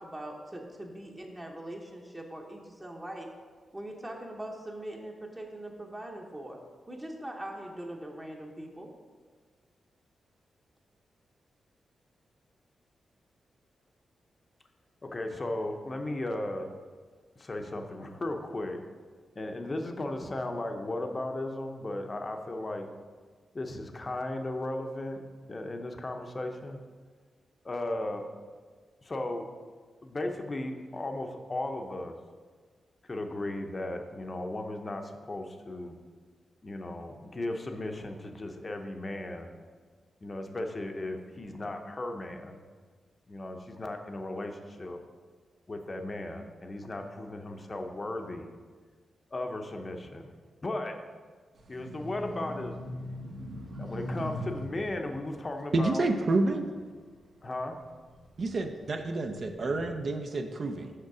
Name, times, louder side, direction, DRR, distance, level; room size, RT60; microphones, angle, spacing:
voice 1, 0.0-3.3 3.7-6.6 6.9-8.9, right 1 dB, 15° right, 0 dB, 0.8 m, -41 dB
voice 2, 15.0-16.7 17.4-18.8 19.4-22.9 23.5-25.2 25.5-26.8 27.6-28.2 29.0-29.5 30.0-32.1 33.0-35.9 36.6-39.5 40.2-42.6 43.3-45.0 45.7-48.5 49.3-50.3 50.6-51.0 51.7-52.8 53.8-56.1 57.4-57.8 59.8-59.9, left 2 dB, 30° left, 4 dB, 0.7 m, -36 dB
sound 1, 51.6-57.1 57.6-59.5, equal, 70° right, 1.2 m, -41 dB
voice 3, 55.7-56.6 58.4-60.9, right 2 dB, 45° right, 5 dB, 0.5 m, -29 dB
6.6 x 6.3 x 4.9 m, 1.5 s
wide cardioid pair, 130°, 0 cm